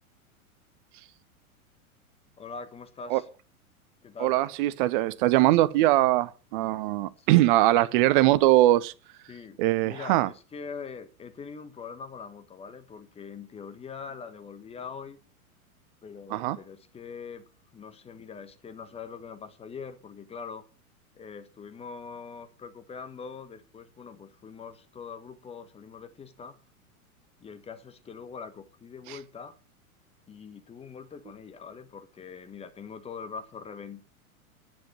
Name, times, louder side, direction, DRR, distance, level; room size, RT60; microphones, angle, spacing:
voice 1, 2.4-3.2 4.0-4.4 7.2-7.5 9.3-15.2 16.0-17.5 17.7-20.6 21.1-26.6 27.4-29.5 30.3-34.0, left 5 dB, 15° left, 1.4 m, -43 dB
voice 2, 4.2-8.9 9.6-10.3 16.3-16.6 29.1-29.2, right 16 dB, 35° right, 0.7 m, -22 dB
10.5 x 7.5 x 7.4 m
figure-of-eight pair, 95°, 43 cm